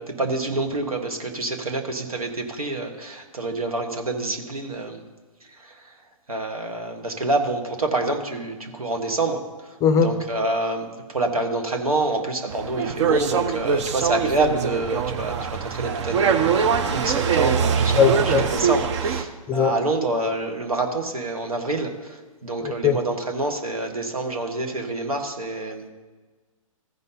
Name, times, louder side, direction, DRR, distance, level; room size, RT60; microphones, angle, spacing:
voice 1, 0.0-5.0 5.6-5.9 6.3-25.9, right 2 dB, 85° right, 5 dB, 1.4 m, -27 dB
sound 1, 12.5-19.2, right 6 dB, 55° right, 0.8 m, -23 dB
voice 2, 17.9-18.5 19.5-19.7 22.6-23.0, left 7 dB, 20° left, 11 dB, 0.5 m, -19 dB
14.5 x 5.4 x 3.9 m, 1.3 s
hypercardioid pair, 125°, 18 cm